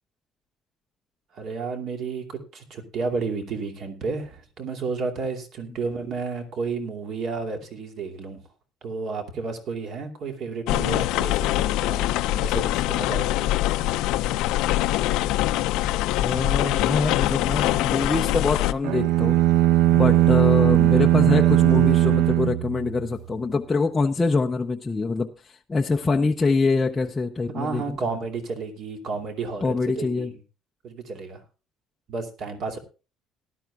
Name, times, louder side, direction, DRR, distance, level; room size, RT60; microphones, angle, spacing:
voice 1, 1.3-8.4 8.8-12.1 12.3-13.4 27.5-30.4 30.8-31.4 32.1-32.8, right 4 dB, 45° right, 5 dB, 2.6 m, -32 dB
sound 1, 10.7-18.7, left 15 dB, 80° left, 0.6 m, -23 dB
voice 2, 16.2-19.4 19.9-28.0 29.6-30.3, left 3 dB, 15° left, 2 dB, 0.6 m, -24 dB
sound 2, 18.8-23.2, right 15 dB, 80° right, 0.6 m, -19 dB
18.5 x 12.0 x 2.3 m, 0.32 s
cardioid pair, 160°, 0 cm